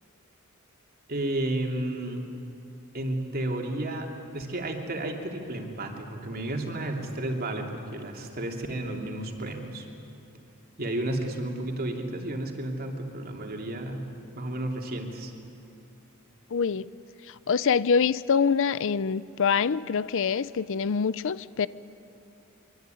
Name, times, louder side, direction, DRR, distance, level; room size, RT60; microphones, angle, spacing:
voice 1, 1.1-2.2 2.9-9.9 10.8-14.0 14.3-15.3, right 1 dB, 45° right, 2 dB, 3.0 m, -32 dB
voice 2, 16.5-16.9 17.3-21.7, left 6 dB, 60° left, 18 dB, 0.5 m, -25 dB
25.0 x 23.5 x 9.3 m, 2.7 s
head